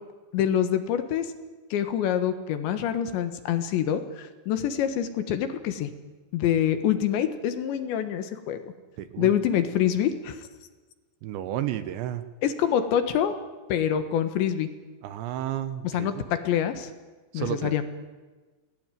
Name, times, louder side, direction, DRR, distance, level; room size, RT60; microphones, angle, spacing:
voice 1, 0.3-1.3 1.7-5.9 6.3-8.6 9.2-10.4 12.4-13.3 13.7-14.7 15.8-16.9 17.3-17.9, left 9 dB, 70° left, 9 dB, 3.6 m, -26 dB
voice 2, 9.0-9.3 11.2-12.2 15.0-16.2 17.3-17.8, right 12 dB, 75° right, 12 dB, 3.0 m, -32 dB
28.0 x 20.0 x 9.2 m, 1.3 s
omnidirectional pair, 5.7 m